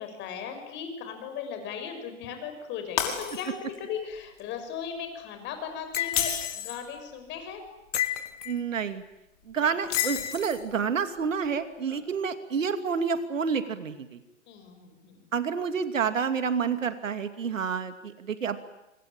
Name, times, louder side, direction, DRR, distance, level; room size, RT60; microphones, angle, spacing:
voice 1, 0.0-7.6 9.6-9.7 11.9-12.0 14.5-15.3, left 7 dB, 30° left, 6 dB, 6.4 m, -37 dB
Shatter, 3.0-3.8 4.2-4.4 6.0-6.9 9.8-10.7, left 9 dB, 50° left, 5.7 m, -31 dB
sound 1, 5.9-6.5 7.9-8.6 9.9-10.5, left 11 dB, 65° left, 2.3 m, -31 dB
voice 2, 8.5-9.0 9.5-14.2 15.3-18.6, right 6 dB, 80° right, 9 dB, 2.7 m, -29 dB
26.0 x 25.0 x 9.0 m, 0.90 s
hypercardioid pair, 130°, 38 cm